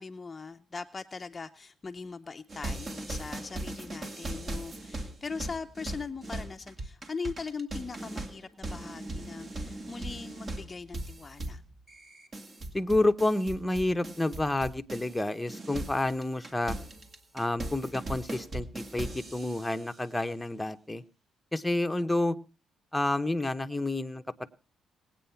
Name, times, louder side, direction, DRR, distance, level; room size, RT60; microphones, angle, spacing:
voice 1, 0.0-11.6, left 4 dB, 30° left, 8 dB, 0.6 m, -40 dB
sound 1, 2.5-15.2 15.5-19.9, right 2 dB, 40° right, 2.3 m, -39 dB
voice 2, 12.7-16.8 17.3-21.0 21.5-22.4 22.9-24.2, left 2 dB, 10° left, 7 dB, 0.9 m, -29 dB
19.5 x 8.9 x 5.7 m, 0.34 s
cardioid pair, 90°, 0 cm